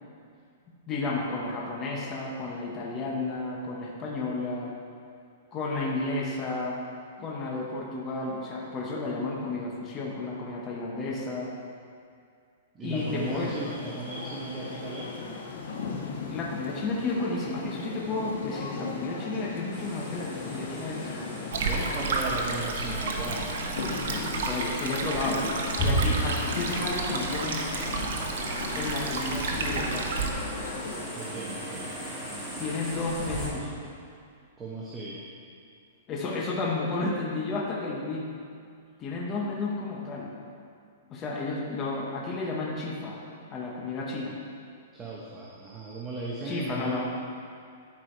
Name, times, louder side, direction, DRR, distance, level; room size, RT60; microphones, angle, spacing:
voice 1, 0.9-4.7 5.5-6.8 7.2-11.5 12.8-13.5 16.3-21.3 24.5-25.4 25.8-27.7 28.7-30.1 32.6-33.7 36.1-38.3 39.0-40.3 41.1-43.2 43.5-44.3 46.4-47.0, left 3 dB, 25° left, -3 dB, 1.0 m, -32 dB
voice 2, 12.7-15.1 21.5-23.5 31.1-32.1 34.6-35.2 44.9-47.0, right 2 dB, 15° right, -5 dB, 1.0 m, -36 dB
sound 1, 13.0-31.0, left 4 dB, 75° left, 1.4 m, -38 dB
sound 2, 19.7-33.5, right 1 dB, ahead, 2.1 m, -36 dB
Stream, 21.5-30.3, right 4 dB, 70° right, 1.1 m, -31 dB
12.0 x 4.9 x 4.6 m, 2.3 s
hypercardioid pair, 155°, 0 cm